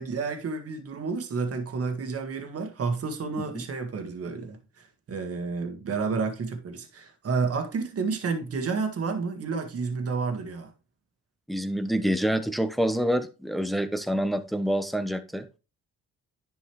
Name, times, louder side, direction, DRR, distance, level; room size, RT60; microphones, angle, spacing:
voice 1, 0.0-10.7, right 4 dB, 50° right, 1.7 m, -30 dB
voice 2, 11.5-15.6, equal, ahead, 1.0 m, -27 dB
11.0 x 5.5 x 3.2 m
cardioid pair, 90°, 30 cm